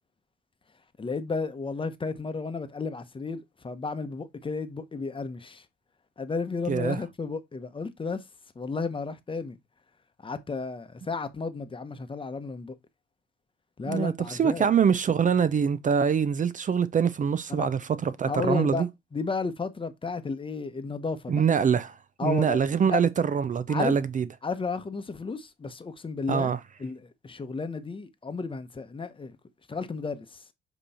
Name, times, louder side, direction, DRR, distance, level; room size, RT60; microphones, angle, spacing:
voice 1, 1.0-5.6 6.2-8.2 8.5-9.6 10.2-12.7 13.8-14.7 17.5-17.7 18.2-18.9 19.1-21.4 22.2-23.0 23.7-24.0 24.4-26.5 26.8-29.4 29.7-30.4, left 4 dB, 25° left, 0.9 m, -33 dB
voice 2, 6.7-7.0 13.9-18.9 21.3-22.0 22.2-24.3 26.3-26.6, right 7 dB, 40° right, 0.6 m, -24 dB
7.7 x 3.1 x 4.2 m
cardioid pair, 90°, 20 cm